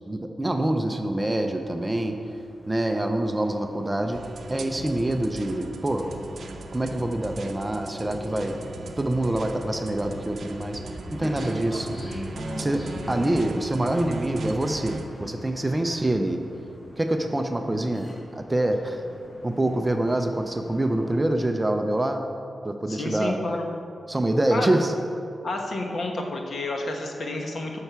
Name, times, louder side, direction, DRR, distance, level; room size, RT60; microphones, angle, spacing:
voice 1, 0.1-2.2 2.7-4.2 4.5-6.1 6.7-8.6 9.0-11.9 12.5-16.4 17.0-19.0 19.4-22.2 22.6-23.4 24.1-24.9, right 1 dB, 15° right, 5 dB, 0.5 m, -26 dB
sound 1, 1.2-21.2, equal, 15° left, 1.3 m, -43 dB
sound 2, 4.1-15.1, right 2 dB, 55° right, 0.7 m, -38 dB
voice 2, 22.9-23.7 24.5-24.7 25.4-27.8, left 2 dB, 50° left, 2 dB, 1.2 m, -30 dB
9.1 x 5.7 x 6.8 m, 2.5 s
wide cardioid pair, 165°, 0 cm